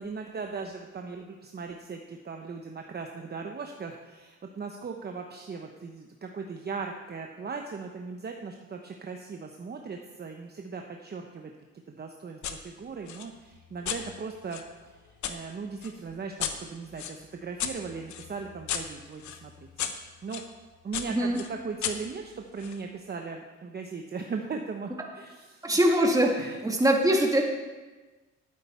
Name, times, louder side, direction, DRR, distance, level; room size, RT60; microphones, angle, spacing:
voice 1, 0.0-11.5 11.9-15.0 15.3-19.9 20.2-20.4 20.8-25.8 26.4-26.6, right 5 dB, 35° right, 3 dB, 0.9 m, -38 dB
sound 1, 12.4-12.6 13.1-15.4 15.8-20.5 20.9-22.8, left 8 dB, 70° left, 1.0 m, -36 dB
voice 2, 25.6-27.4, right 1 dB, 10° right, 1 dB, 2.0 m, -23 dB
12.0 x 8.8 x 4.4 m, 1.2 s
cardioid pair, 90°, 30 cm